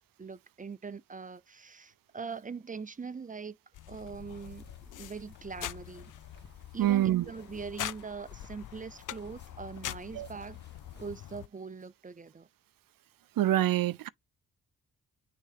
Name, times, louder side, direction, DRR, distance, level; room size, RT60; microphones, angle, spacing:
voice 1, 0.2-3.6 3.9-4.6 4.9-6.1 6.7-10.6 11.0-12.5, right 5 dB, 25° right, 0.5 m, -42 dB
sound 1, 3.7-11.5, left 13 dB, 60° left, 0.5 m, -44 dB
sound 2, 4.1-11.1, left 1 dB, 30° left, 2.1 m, -57 dB
voice 2, 6.8-7.3 10.2-10.3 13.4-14.1, right 13 dB, 70° right, 0.5 m, -26 dB
6.4 x 3.7 x 4.2 m
cardioid pair, 85°, 35 cm